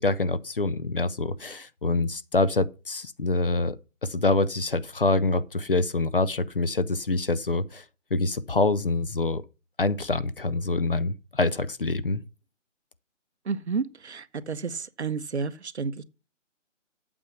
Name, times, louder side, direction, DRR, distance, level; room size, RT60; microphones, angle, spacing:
voice 1, 0.0-7.8 8.1-9.4 9.8-12.2, left 3 dB, 45° left, 0.6 m, -26 dB
voice 2, 13.5-16.0, right 5 dB, 60° right, 0.8 m, -31 dB
8.6 x 7.2 x 5.8 m
hypercardioid pair, 175°, 38 cm